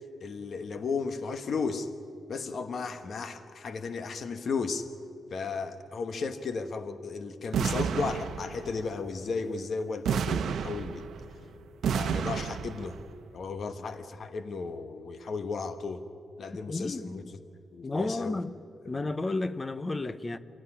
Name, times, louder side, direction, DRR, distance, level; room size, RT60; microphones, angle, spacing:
voice 1, 0.2-1.9 2.3-4.9 5.3-11.1 11.9-13.0 13.3-16.0 16.4-17.4 17.7-18.4 18.8-18.9, left 4 dB, 50° left, 1.2 m, -34 dB
sound 1, 7.5-8.8 10.0-11.3 11.8-13.0, right 7 dB, 80° right, 0.9 m, -30 dB
voice 2, 16.7-17.3 17.8-18.5 18.9-20.4, left 2 dB, 20° left, 0.7 m, -32 dB
25.0 x 17.5 x 10.0 m
wide cardioid pair, 155°, 0 cm